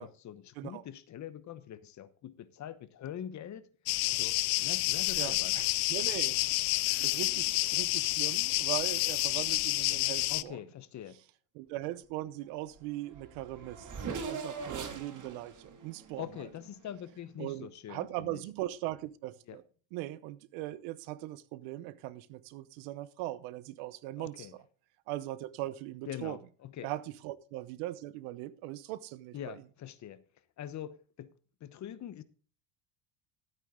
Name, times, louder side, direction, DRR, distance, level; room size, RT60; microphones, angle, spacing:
voice 1, 0.0-3.7 4.1-5.6 10.3-11.2 16.2-18.4 19.5-19.6 24.2-24.6 26.1-26.9 29.3-30.2 30.6-31.3 31.6-32.2, left 10 dB, 40° left, 0.9 m, -44 dB
sound 1, 3.9-10.4, left 23 dB, 85° left, 0.7 m, -29 dB
voice 2, 5.1-6.4 7.0-10.6 11.5-16.3 17.4-19.6 19.9-24.5 25.1-26.4 26.8-29.5, right 16 dB, 80° right, 1.0 m, -40 dB
Race car auto racing / Accelerating revving vroom, 12.8-12.9 13.1-17.1, right 5 dB, 40° right, 2.5 m, -42 dB
12.5 x 9.1 x 3.8 m
cardioid pair, 135°, 46 cm